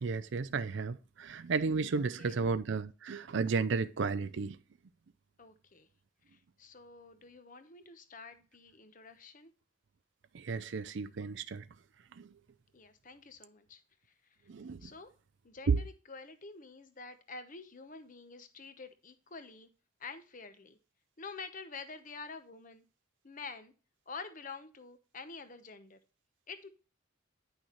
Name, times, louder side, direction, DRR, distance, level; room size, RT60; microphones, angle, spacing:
voice 1, 0.0-4.6 10.3-11.6 12.2-12.3 14.5-14.9 15.7-15.8, right 4 dB, 60° right, 0.4 m, -33 dB
voice 2, 1.9-2.4 5.4-5.9 6.6-9.5 12.7-13.8 14.8-15.1 15.4-19.7 20.0-20.8 21.2-22.8 23.2-23.7 24.1-26.0 26.5-26.7, left 4 dB, 40° left, 0.9 m, -48 dB
10.0 x 6.2 x 3.1 m
head